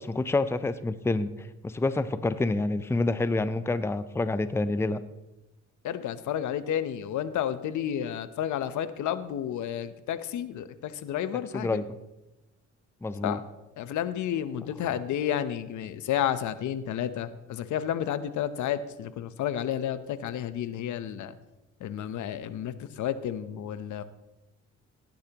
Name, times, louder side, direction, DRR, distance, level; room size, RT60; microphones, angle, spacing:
voice 1, 0.0-5.0 11.5-11.8 13.0-13.4, left 2 dB, 10° left, 13 dB, 0.5 m, -28 dB
voice 2, 5.8-11.8 13.2-13.4 13.8-21.3 21.8-24.0, left 10 dB, 75° left, 13 dB, 0.8 m, -31 dB
17.0 x 10.5 x 3.0 m, 0.97 s
cardioid pair, 90°, 30 cm